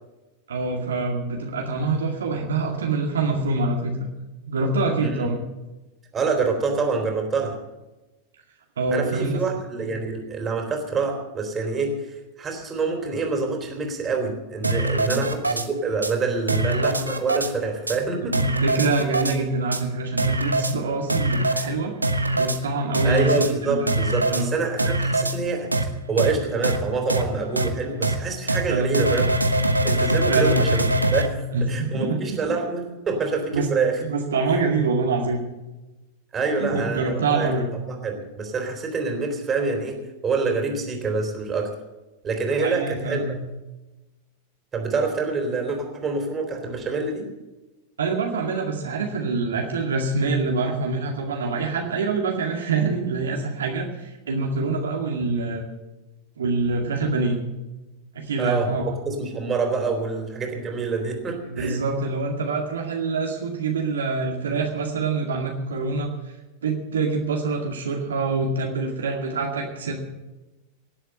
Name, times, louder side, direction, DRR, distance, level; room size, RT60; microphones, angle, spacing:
voice 1, 0.5-4.1 4.5-5.4 8.8-9.4 9.8-9.9 15.1-15.3 18.2-21.9 22.4-24.0 24.3-24.5 28.7-28.9 30.3-30.7 31.5-32.6 33.5-33.7 34.0-35.4 36.6-37.7 42.6-43.3 48.0-55.6 56.4-57.4 58.1-58.8 61.5-66.1 66.6-69.9, right 3 dB, 65° right, 0 dB, 2.1 m, -25 dB
voice 2, 6.1-7.6 8.9-18.3 23.0-25.7 26.1-29.3 29.8-30.8 31.1-31.4 31.7-34.0 36.3-40.0 40.2-41.7 42.2-43.4 44.7-47.3 58.4-61.8, right 4 dB, 20° right, 3 dB, 3.9 m, -26 dB
sound 1, 14.6-15.7 16.0-16.1 16.5-17.5 17.9-18.0 18.3-19.4 19.7-19.8 20.2-20.7 21.1-21.7 22.0-22.6 22.9-23.5 23.9-24.4 24.8-25.4 25.7-25.8 26.2-26.3 26.6-26.8 27.1-27.2 27.6-27.7 28.0-28.1 28.5-28.6 28.9-31.3, right 1 dB, 85° right, 1.1 m, -22 dB
18.5 x 7.9 x 7.8 m, 1.1 s
figure-of-eight pair, 90°, 0 cm